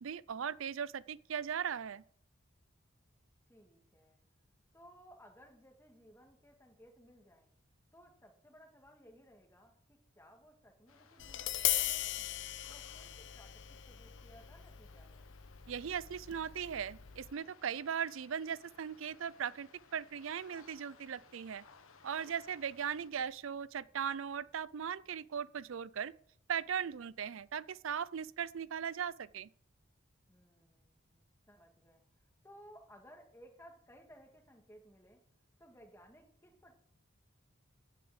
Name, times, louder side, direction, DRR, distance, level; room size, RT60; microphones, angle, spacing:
voice 1, 0.0-2.0 15.7-21.6 22.0-26.1 26.5-29.5, right 7 dB, 75° right, 0.5 m, -38 dB
voice 2, 3.5-4.2 4.7-7.5 7.9-12.3 12.7-15.3 22.2-22.7 30.3-35.2 35.6-36.8, equal, 10° left, 1.9 m, -60 dB
sound 1, 10.9-23.1, left 4 dB, 90° left, 1.3 m, -62 dB
Tap, 11.2-17.3, left 14 dB, 60° left, 0.5 m, -39 dB
9.5 x 6.7 x 8.9 m
head